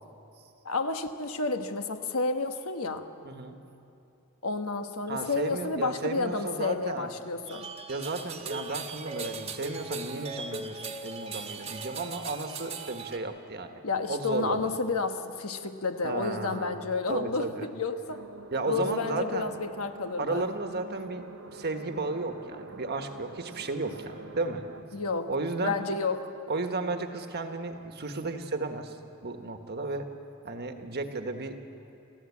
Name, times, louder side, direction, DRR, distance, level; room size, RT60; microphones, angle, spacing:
voice 1, 0.6-3.1 4.4-7.7 13.8-18.2 18.7-20.4 24.9-25.3 25.6-26.3, left 3 dB, 75° left, 7 dB, 1.2 m, -31 dB
voice 2, 3.2-3.5 5.1-7.1 7.9-13.8 14.1-14.6 16.0-16.8 17.1-17.7 18.5-19.5 20.2-24.6 25.3-25.8 26.5-29.0 29.2-30.1 30.4-31.6, right 3 dB, 45° right, 6 dB, 1.4 m, -33 dB
sound 1, 7.5-13.2, right 3 dB, 25° right, 1.4 m, -39 dB
sound 2, 18.1-24.8, right 3 dB, 75° right, 1.0 m, -46 dB
29.0 x 14.5 x 8.5 m, 2.8 s
head